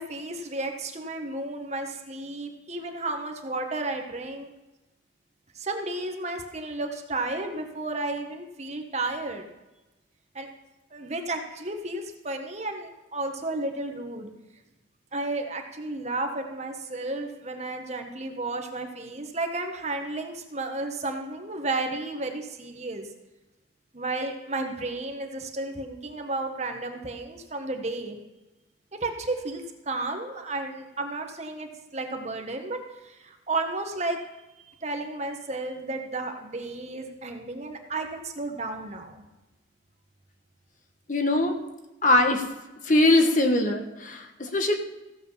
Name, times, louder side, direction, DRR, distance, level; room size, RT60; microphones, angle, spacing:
voice 1, 0.0-4.5 5.5-9.4 10.3-10.5 10.9-14.3 15.1-23.1 23.9-28.2 28.9-32.8 33.0-34.3 34.8-39.2, right 2 dB, 35° right, 4 dB, 1.4 m, -32 dB
voice 2, 41.1-41.6 42.0-42.5 42.8-44.8, left 2 dB, 45° left, 4 dB, 1.3 m, -22 dB
15.5 x 7.8 x 5.6 m, 1.0 s
head